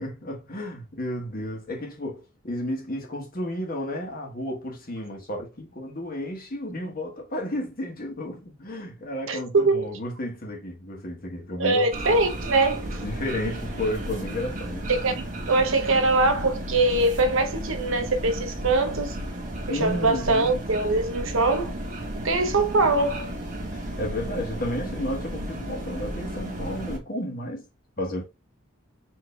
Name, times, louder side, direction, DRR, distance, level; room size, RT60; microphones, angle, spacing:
voice 1, 0.0-11.9 13.0-14.9 19.7-20.5 23.7-27.7 28.0-28.2, left 1 dB, 45° left, 1.5 m, -32 dB
voice 2, 9.3-9.8 11.6-12.9 14.9-19.2 19.7-21.7 22.2-23.3, right 2 dB, 65° right, 0.8 m, -23 dB
sound 1, 11.9-27.0, right 1 dB, 40° right, 1.3 m, -33 dB
4.6 x 3.1 x 3.3 m
head